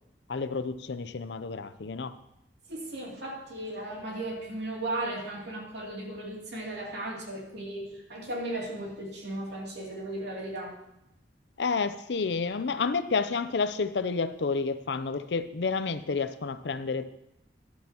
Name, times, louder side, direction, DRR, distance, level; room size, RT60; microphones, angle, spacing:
voice 1, 0.3-2.1 11.6-17.1, left 4 dB, 75° left, 12 dB, 0.6 m, -30 dB
voice 2, 2.7-10.7, right 1 dB, 70° right, -2 dB, 2.8 m, -36 dB
14.5 x 11.5 x 3.0 m, 0.83 s
head